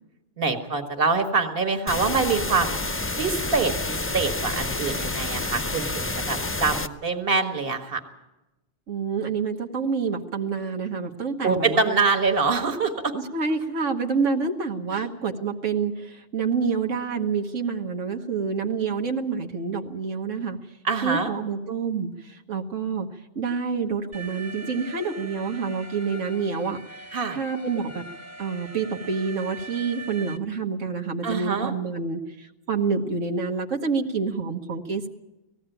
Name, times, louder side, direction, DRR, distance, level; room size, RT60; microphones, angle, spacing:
voice 1, 0.4-2.8 3.2-8.0 11.4-13.1 14.9-15.1 20.8-21.3 27.1-27.4 31.2-31.7, right 4 dB, 50° right, 6 dB, 1.8 m, -25 dB
sound 1, 1.9-6.9, left 2 dB, 15° left, 0.4 m, -29 dB
voice 2, 8.9-11.9 13.1-20.6 21.0-23.1 23.3-28.0 28.4-35.1, right 5 dB, 90° right, 3 dB, 1.7 m, -28 dB
Alarm, 24.1-30.4, right 2 dB, 15° right, 0.8 m, -41 dB
18.5 x 15.5 x 9.0 m, 1.0 s
omnidirectional pair, 1.3 m